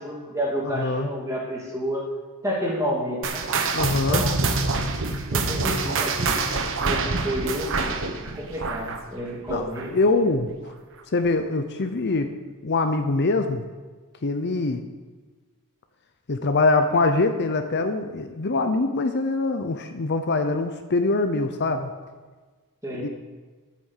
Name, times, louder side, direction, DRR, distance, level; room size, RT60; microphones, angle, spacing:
voice 1, 0.0-2.1 2.4-3.5 3.9-4.4 5.3-6.4 6.8-10.0 22.8-23.1, equal, 15° right, -3 dB, 2.9 m, -30 dB
voice 2, 0.6-1.1 3.7-4.3 9.5-10.5 11.1-12.3 12.6-13.6 14.2-14.8 16.3-21.9 23.0-23.1, left 3 dB, 50° left, 7 dB, 0.7 m, -23 dB
sound 1, 3.2-10.1 10.4-10.7 11.3-11.4 12.1-12.2, right 4 dB, 60° right, 1.0 m, -26 dB
9.4 x 8.6 x 7.3 m, 1.4 s
head